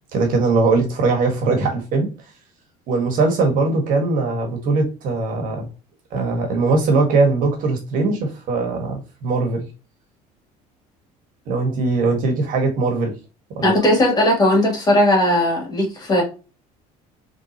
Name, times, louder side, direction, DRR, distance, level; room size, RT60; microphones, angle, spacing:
voice 1, 0.1-2.1 2.9-5.7 6.1-9.7 11.5-13.2 13.5-13.7, right 3 dB, 60° right, 1.7 m, -20 dB
voice 2, 13.6-16.2, left 1 dB, 25° left, 2.7 m, -17 dB
4.6 x 3.6 x 2.9 m
cardioid pair, 120°, 16 cm